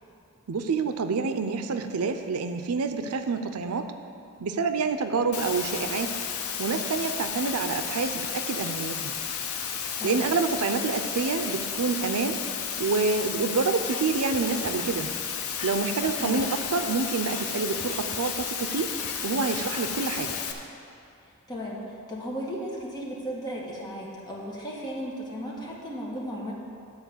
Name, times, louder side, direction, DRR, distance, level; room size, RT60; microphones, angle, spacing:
voice 1, 0.5-3.9 4.4-6.2 6.6-9.1 10.0-12.4 12.8-15.1 15.6-18.9 19.2-20.3, right 4 dB, 85° right, 8 dB, 0.5 m, -27 dB
Water, 5.3-20.5, left 7 dB, 75° left, 0.8 m, -33 dB
sound 1, 13.9-15.2 15.5-16.9 17.1-17.5 17.7-18.6 18.8-19.2 19.4-20.7, left 4 dB, 35° left, 0.6 m, -42 dB
voice 2, 21.5-26.5, equal, 20° left, -4 dB, 1.6 m, -35 dB
10.5 x 4.6 x 8.0 m, 2.6 s
head